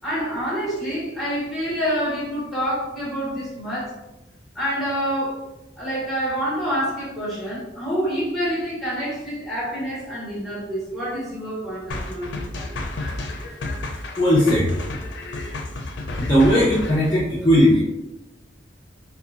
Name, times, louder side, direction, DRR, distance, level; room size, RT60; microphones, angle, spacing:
voice 1, 0.0-4.0 4.5-5.4 5.8-12.5, equal, ahead, -8 dB, 1.1 m, -27 dB
sound 1, 11.9-17.1, left 2 dB, 75° left, 0.4 m, -31 dB
voice 2, 14.2-14.7 16.2-17.8, equal, 20° left, -9 dB, 0.6 m, -17 dB
2.7 x 2.2 x 2.4 m, 0.97 s
head